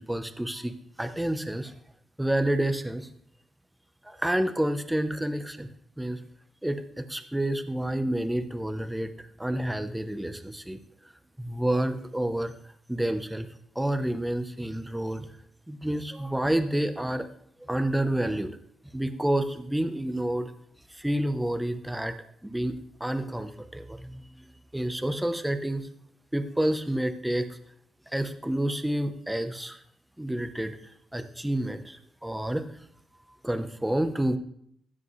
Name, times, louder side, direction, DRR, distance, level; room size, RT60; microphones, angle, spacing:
voice 1, 0.0-1.7 2.2-3.1 4.0-5.7 6.0-6.2 6.6-10.8 11.4-12.5 12.9-13.5 13.7-15.3 15.7-17.3 17.6-18.5 18.9-20.5 20.9-22.1 22.4-24.5 24.7-25.9 26.3-27.5 28.1-29.8 30.2-32.6 33.4-34.4, right 1 dB, 5° right, 9 dB, 0.8 m, -29 dB
15.5 x 7.6 x 3.2 m, 0.69 s
cardioid pair, 115°, 0 cm